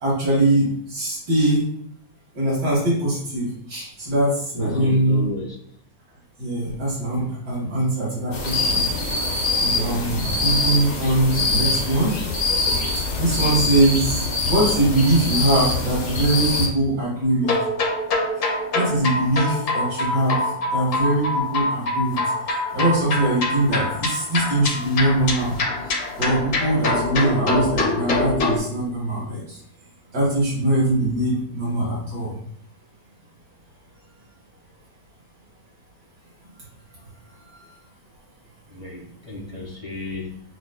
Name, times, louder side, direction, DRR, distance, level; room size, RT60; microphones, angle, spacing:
voice 1, 0.0-1.7 2.3-5.2 6.4-8.8 9.5-12.1 12.5-12.8 13.1-17.5 18.7-20.4 20.7-22.2 22.7-25.5 26.2-29.6 30.1-32.3 37.5-37.6, right 1 dB, 90° right, -7 dB, 2.5 m, -22 dB
voice 2, 4.5-5.6 38.7-40.4, left 3 dB, 25° right, -4 dB, 0.7 m, -33 dB
sound 1, 8.3-16.7, left 3 dB, 80° left, 1.8 m, -24 dB
sound 2, 17.4-28.6, left 2 dB, 55° left, 1.0 m, -25 dB
7.4 x 2.6 x 2.2 m, 0.67 s
omnidirectional pair, 1.9 m